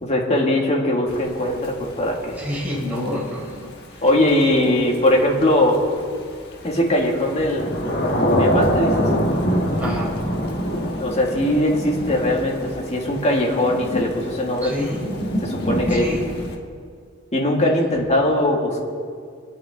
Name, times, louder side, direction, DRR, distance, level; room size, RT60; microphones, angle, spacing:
voice 1, 0.0-2.4 4.0-5.8 6.6-7.7 8.4-9.1 11.0-14.7 15.4-16.1 17.3-18.8, left 1 dB, 35° left, -1 dB, 2.0 m, -20 dB
Thunder / Rain, 1.1-16.6, equal, 50° left, 1.5 m, -25 dB
voice 2, 2.4-4.0 4.7-5.2 9.8-10.2 14.6-15.1 15.9-16.3 16.6-16.7, left 1 dB, 10° right, -7 dB, 4.1 m, -29 dB
23.5 x 9.2 x 3.7 m, 2.1 s
head